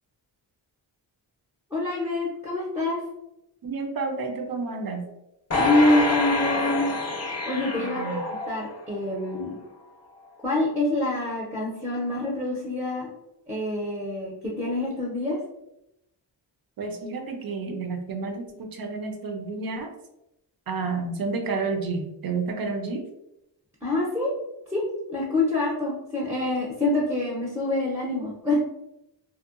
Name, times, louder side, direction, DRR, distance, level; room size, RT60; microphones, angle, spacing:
voice 1, 1.7-3.0 5.6-6.9 7.4-9.6 10.4-13.1 13.5-15.4 23.8-24.3 24.7-24.8 25.1-28.6, left 2 dB, 5° right, -4 dB, 0.6 m, -26 dB
voice 2, 3.6-5.1 7.8-8.2 16.8-19.9 20.7-23.1, right 4 dB, 55° right, 4 dB, 0.5 m, -30 dB
sound 1, 5.5-9.0 9.4-9.5, left 2 dB, 35° left, 0.6 m, -27 dB
2.7 x 2.1 x 2.4 m, 0.84 s
wide cardioid pair, 135°, 44 cm